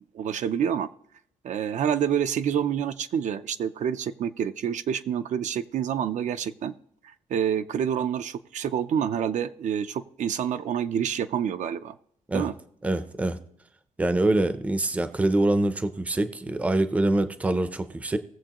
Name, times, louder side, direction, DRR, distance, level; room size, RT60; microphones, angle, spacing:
voice 1, 0.1-0.9 1.4-6.7 7.3-12.0 12.3-12.5, right 8 dB, 60° right, 10 dB, 0.5 m, -27 dB
voice 2, 12.8-13.4 14.0-18.2, right 2 dB, 10° right, 11 dB, 0.5 m, -24 dB
19.0 x 7.5 x 2.9 m, 0.68 s
wide cardioid pair, 175°, 14 cm